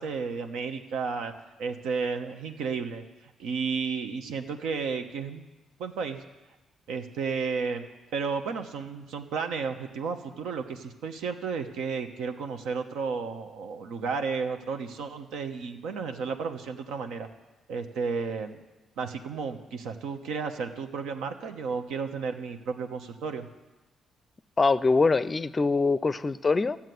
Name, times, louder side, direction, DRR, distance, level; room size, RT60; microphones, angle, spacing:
voice 1, 0.0-1.3 1.6-3.0 3.4-5.4 5.8-6.2 6.9-7.8 8.1-17.3 17.7-18.6 19.0-23.5, right 5 dB, 85° right, 6 dB, 1.1 m, -32 dB
voice 2, 24.6-26.8, left 3 dB, 30° left, 15 dB, 0.5 m, -23 dB
14.0 x 7.3 x 9.4 m, 1.1 s
cardioid pair, 90°, 0 cm